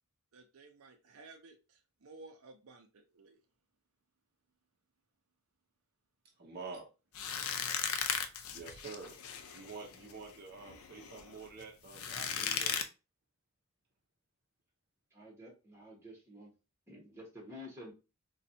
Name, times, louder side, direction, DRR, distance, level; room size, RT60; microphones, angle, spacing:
voice 1, 0.3-3.4 7.4-7.5, right 3 dB, 85° right, 5 dB, 0.6 m, -56 dB
voice 2, 6.4-6.9 8.5-9.2 9.5-12.8, right 4 dB, 45° right, 0 dB, 0.7 m, -47 dB
sound 1, 7.2-12.8, left 7 dB, 90° left, 0.5 m, -37 dB
voice 3, 15.1-16.5 16.9-17.9, left 1 dB, 15° right, -2 dB, 1.1 m, -50 dB
4.2 x 2.3 x 2.6 m, 0.29 s
head